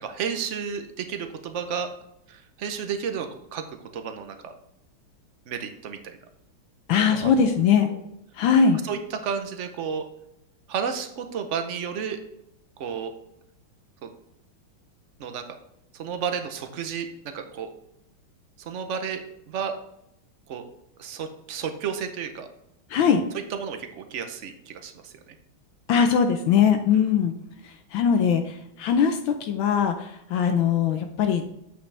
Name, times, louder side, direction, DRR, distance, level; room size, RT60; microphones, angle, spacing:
voice 1, 0.0-1.9 2.3-4.5 5.5-6.2 7.0-7.5 7.9-8.0 8.8-10.0 10.7-12.2 12.8-13.1 14.0-14.1 15.2-15.4 15.9-17.7 18.6-19.7 20.5-20.6 21.0-22.5 23.5-25.3, right 7 dB, 65° right, 7 dB, 0.7 m, -32 dB
voice 2, 6.9-7.9 8.4-8.8 22.9-23.2 25.9-27.3 27.6-31.4, left 7 dB, 80° left, 6 dB, 1.5 m, -21 dB
8.5 x 5.7 x 3.3 m, 0.80 s
omnidirectional pair, 2.2 m